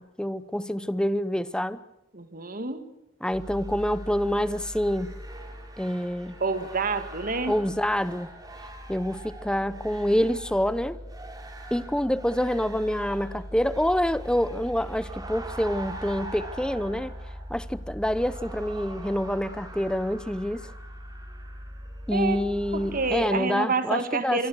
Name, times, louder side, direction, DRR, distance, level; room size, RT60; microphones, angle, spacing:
voice 1, 0.0-1.8 3.2-5.1 5.8-6.3 7.5-8.3 8.9-11.0 11.7-17.1 17.5-20.7 22.1-24.5, equal, 5° left, 0.9 m, -27 dB
voice 2, 2.1-2.8 6.4-7.6 22.1-22.4 22.7-24.5, right 4 dB, 45° right, 2.2 m, -28 dB
sound 1, 3.3-23.3, right 1 dB, 20° right, 4.3 m, -40 dB
26.0 x 24.0 x 6.5 m
head